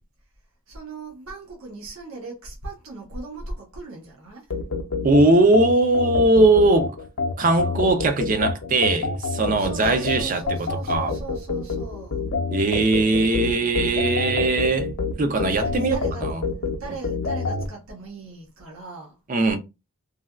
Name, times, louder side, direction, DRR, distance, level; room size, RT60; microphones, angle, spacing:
voice 1, 0.7-4.5 9.5-12.3 15.5-19.2, right 3 dB, 75° right, 0.8 m, -38 dB
sound 1, 4.5-17.7, left 4 dB, 60° left, 0.5 m, -27 dB
voice 2, 5.0-6.9 7.4-11.1 12.5-14.9 15.2-16.4 19.3-19.6, right 2 dB, 35° right, 0.4 m, -20 dB
3.2 x 2.2 x 2.2 m
head